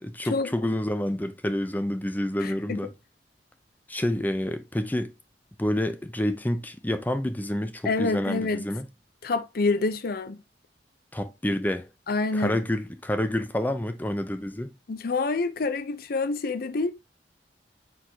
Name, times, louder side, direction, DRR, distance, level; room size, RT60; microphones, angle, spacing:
voice 1, 0.0-2.9 3.9-5.1 5.6-8.9 11.1-11.9 12.3-14.7, left 1 dB, 10° left, 0.5 m, -28 dB
voice 2, 2.4-2.8 7.8-8.7 9.2-10.4 12.1-12.6 14.9-16.9, left 3 dB, 55° left, 0.6 m, -27 dB
4.6 x 4.0 x 2.9 m
head